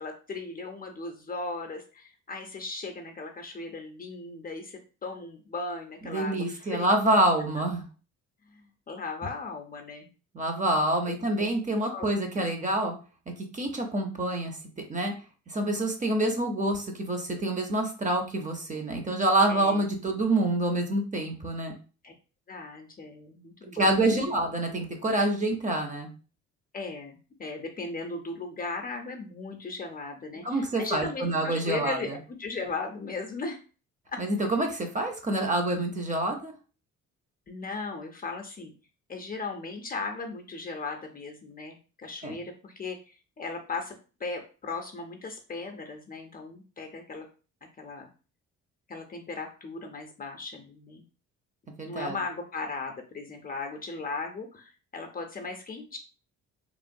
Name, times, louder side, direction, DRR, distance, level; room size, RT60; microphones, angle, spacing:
voice 1, 0.0-6.9 8.5-10.1 11.1-11.2 11.9-12.1 12.3-12.5 19.5-19.8 22.0-22.1 22.5-24.3 26.7-33.6 34.1-34.2 37.5-38.7 39.1-43.9 44.2-47.3 47.8-48.1 48.9-51.0 51.8-56.0, left 3 dB, 30° left, 3 dB, 0.5 m, -37 dB
voice 2, 6.0-7.8 10.3-12.9 13.5-14.6 14.9-15.1 15.5-21.8 23.7-26.1 30.4-32.0 34.2-36.5 42.2-42.4 51.8-52.2, right 1 dB, 25° right, 4 dB, 0.6 m, -27 dB
3.0 x 2.1 x 2.6 m, 0.35 s
cardioid pair, 90°, 30 cm